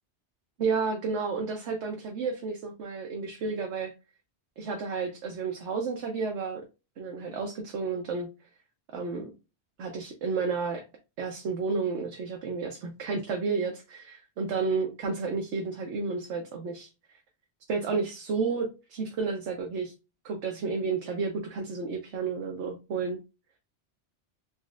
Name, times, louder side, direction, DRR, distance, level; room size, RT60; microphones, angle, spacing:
voice 1, 0.6-3.9 4.6-6.6 7.0-8.3 8.9-9.3 9.8-10.8 11.2-16.9 17.7-19.9 20.2-23.2, right 4 dB, 90° right, 2 dB, 1.0 m, -31 dB
4.0 x 3.1 x 2.4 m, 0.28 s
omnidirectional pair, 1.2 m